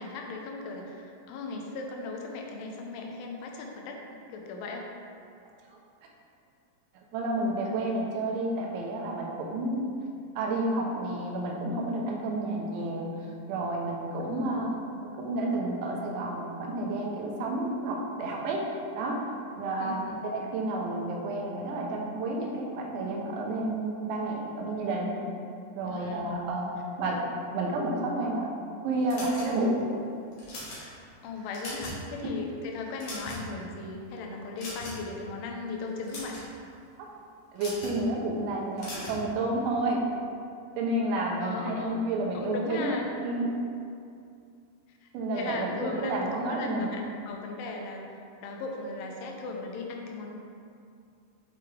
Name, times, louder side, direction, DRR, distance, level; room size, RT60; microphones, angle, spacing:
voice 1, 0.0-4.9 14.2-14.7 19.8-20.2 25.9-26.4 31.2-36.4 41.4-41.9 42.3-43.1 45.0-50.3, left 3 dB, 90° left, 1 dB, 3.2 m, -37 dB
voice 2, 7.1-9.9 10.4-14.7 15.0-19.3 19.6-25.2 25.8-27.2 27.5-28.5 28.8-29.8 37.5-40.0 40.8-42.9 43.2-43.5 45.1-46.9, right 2 dB, 80° right, -1 dB, 3.1 m, -30 dB
sound 1, 29.1-29.8 30.3-30.8 31.4-32.0 32.4-32.5 32.9-33.6 34.6-35.1 35.9-36.5 37.6-38.0 38.8-39.2, left 2 dB, 70° left, 1.4 m, -40 dB
8.1 x 5.1 x 3.3 m, 2.4 s
omnidirectional pair, 5.4 m